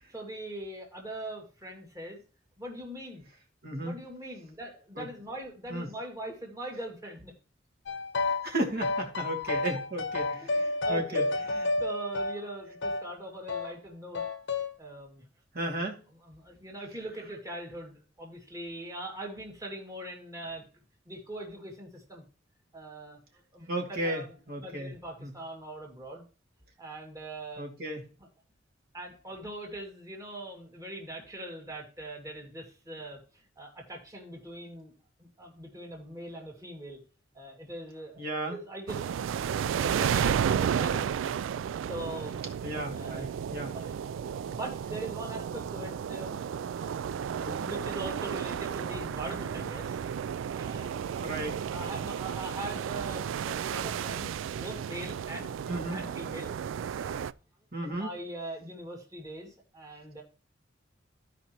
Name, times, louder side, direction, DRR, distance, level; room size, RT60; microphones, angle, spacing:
voice 1, 0.1-2.2 2.6-3.2 3.8-7.3 8.9-9.0 9.4-9.5 10.4-11.4 11.8-14.2 14.8-15.2 16.2-22.2 22.7-26.2 26.8-27.6 28.9-34.9 35.2-37.0 37.3-41.5 41.9-42.4 42.9-43.2 43.7-44.0 44.3-50.0 50.6-51.1 51.7-55.5 55.9-56.6 56.9-57.3 57.8-60.2, right 1 dB, 20° right, 0 dB, 2.2 m, -42 dB
voice 2, 3.6-4.0 5.0-5.1 5.7-5.9 8.3-11.2 11.5-11.7 15.5-16.0 23.7-24.2 24.5-24.9 25.2-25.3 27.6-28.0 38.2-38.6 42.6-43.7 47.3-47.7 51.2-51.6 55.7-56.0 57.7-58.1, right 1 dB, 55° right, 2 dB, 2.3 m, -34 dB
sound 1, 7.9-8.5 8.8-13.1 13.5-13.7 14.1-14.7, left 3 dB, 65° left, 0.8 m, -31 dB
sound 2, 38.9-57.3, right 8 dB, 80° right, 0.3 m, -33 dB
15.0 x 5.1 x 2.9 m, 0.37 s
head